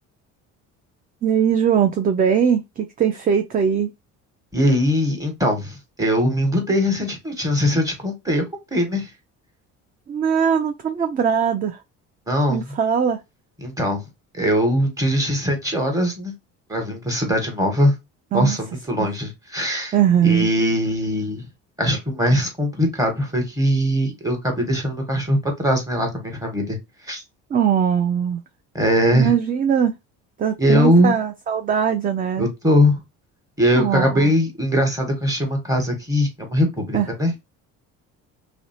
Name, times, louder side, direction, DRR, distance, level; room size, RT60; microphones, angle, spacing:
voice 1, 1.2-3.9 10.1-11.8 12.5-13.2 18.3-18.6 19.0-19.1 19.9-20.5 27.5-28.4 29.1-29.9 30.4-32.5 33.8-34.3 36.9-37.1, right 8 dB, 25° right, 0.3 m, -20 dB
voice 2, 4.5-8.4 8.7-9.1 12.3-12.7 13.6-14.0 14.3-16.3 16.7-18.0 18.3-19.9 20.2-21.4 21.8-26.8 27.1-27.2 28.7-29.3 30.6-31.2 32.4-33.0 33.6-37.4, equal, 10° right, 1.2 m, -21 dB
2.5 x 2.1 x 2.7 m
supercardioid pair, 75°, 36 cm